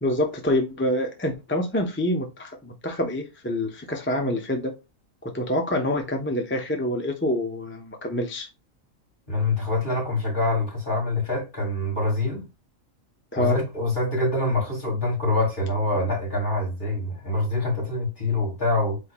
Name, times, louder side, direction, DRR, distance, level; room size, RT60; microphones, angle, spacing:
voice 1, 0.0-4.7 5.2-8.5 13.3-13.5, left 1 dB, 15° left, 0.5 m, -26 dB
voice 2, 9.3-12.4 13.4-19.0, left 2 dB, 35° left, 2.5 m, -25 dB
8.2 x 2.9 x 2.2 m
omnidirectional pair, 1.4 m